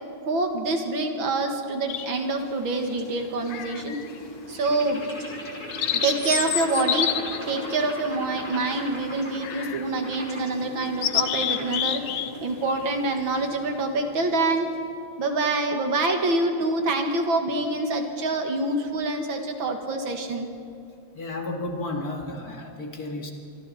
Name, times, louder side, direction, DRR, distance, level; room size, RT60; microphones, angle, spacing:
voice 1, 0.3-4.0 4.5-5.0 5.9-7.1 7.5-14.7 15.2-20.5, right 2 dB, 65° right, 4 dB, 2.4 m, -26 dB
sound 1, 1.7-15.0, left 1 dB, 10° left, 2.7 m, -39 dB
sound 2, 1.9-2.4 3.5-4.2 4.6-4.7 5.3-8.7 9.4-9.9 10.3-10.4 10.8-12.3 12.6-12.9, left 10 dB, 70° left, 1.6 m, -29 dB
voice 2, 21.1-23.3, left 2 dB, 45° left, 1 dB, 2.5 m, -32 dB
26.5 x 24.0 x 4.2 m, 2.6 s
omnidirectional pair, 2.4 m